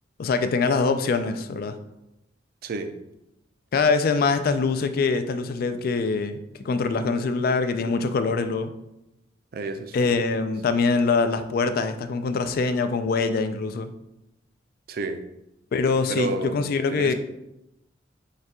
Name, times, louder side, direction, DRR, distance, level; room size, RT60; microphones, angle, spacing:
voice 1, 0.2-1.8 3.7-8.7 9.9-13.9 15.7-17.1, left 4 dB, 55° left, 0.3 m, -24 dB
voice 2, 2.6-2.9 9.5-10.1 14.9-15.2 16.1-16.6 16.9-17.1, right 3 dB, 55° right, 0.4 m, -30 dB
5.3 x 2.3 x 3.6 m
head